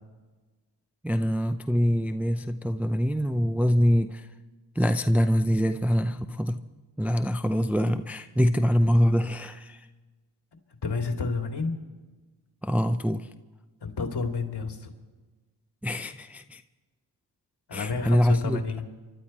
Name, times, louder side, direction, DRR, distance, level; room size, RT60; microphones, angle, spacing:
voice 1, 1.0-4.3 4.8-6.6 7.0-9.9 12.6-13.3 15.8-16.6 17.7-18.6, equal, 5° right, 8 dB, 0.5 m, -24 dB
voice 2, 10.8-11.7 13.8-14.9 17.7-18.9, left 4 dB, 55° left, 3 dB, 2.6 m, -30 dB
25.5 x 12.0 x 4.3 m, 1.3 s
cardioid pair, 65°, 48 cm